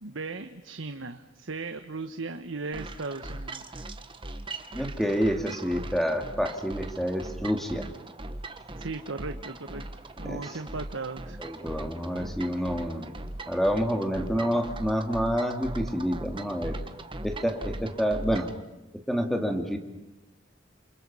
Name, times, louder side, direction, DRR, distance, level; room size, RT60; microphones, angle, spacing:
voice 1, 0.0-3.8 8.8-9.8 10.2-11.4, right 3 dB, 80° right, 8 dB, 1.2 m, -37 dB
sound 1, 2.7-18.6, right 2 dB, 25° right, 1.4 m, -39 dB
voice 2, 4.7-7.9 10.2-10.4 11.4-13.1 13.5-16.8 17.2-18.5 19.1-19.8, equal, ahead, 4 dB, 2.5 m, -28 dB
28.5 x 28.5 x 5.6 m, 0.99 s
head